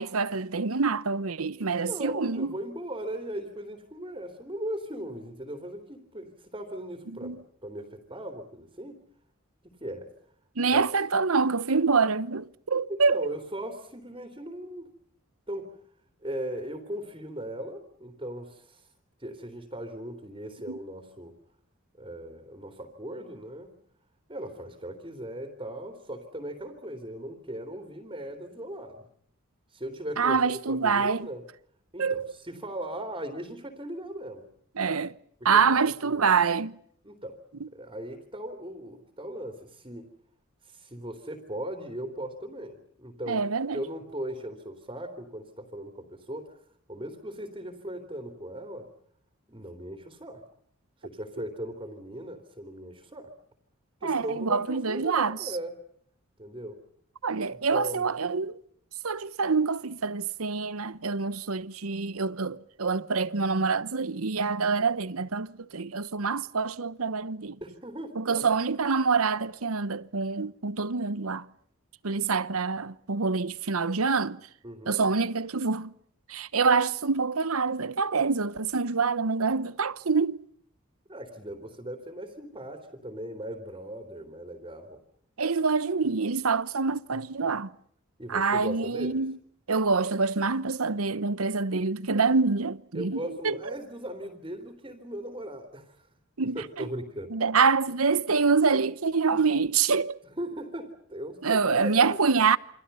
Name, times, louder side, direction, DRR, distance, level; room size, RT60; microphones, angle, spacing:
voice 1, 0.0-2.5 7.2-7.4 10.6-13.3 20.7-20.8 30.2-31.3 32.0-32.3 34.8-35.1 35.4-36.8 43.3-43.8 54.0-55.4 57.2-58.6 59.0-67.6 68.2-71.5 72.0-74.4 74.9-75.9 76.3-80.4 85.4-87.7 88.3-89.4 89.7-93.6 96.4-96.9 97.3-100.2 101.4-102.6, right 4 dB, 75° right, 1.0 m, -26 dB
voice 2, 1.9-9.0 9.6-10.1 10.7-10.8 12.9-14.9 15.5-15.7 16.2-18.9 19.2-21.3 21.9-23.7 24.3-29.1 29.7-31.5 31.9-34.5 35.4-35.6 36.0-36.2 37.0-37.4 37.7-40.1 40.6-43.5 43.7-46.6 46.9-48.9 49.5-50.4 51.0-53.3 54.0-55.7 56.4-56.8 57.5-58.1 67.6-68.5 74.6-75.0 81.1-85.0 88.2-89.2 92.9-96.1 96.5-97.3 100.4-102.2, right 1 dB, 25° right, 3.4 m, -38 dB
29.0 x 25.5 x 5.6 m
head